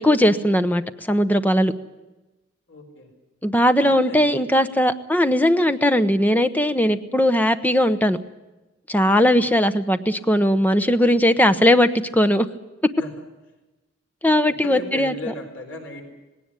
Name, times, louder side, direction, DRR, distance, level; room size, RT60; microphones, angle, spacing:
voice 1, 0.0-1.7 3.4-8.2 8.9-12.5 14.2-15.1, equal, 10° left, 10 dB, 0.9 m, -19 dB
voice 2, 2.7-3.1 3.8-4.4 9.3-9.4 13.0-13.1 14.5-16.1, left 1 dB, 85° left, 3 dB, 4.3 m, -36 dB
18.5 x 18.0 x 9.9 m, 1.1 s
head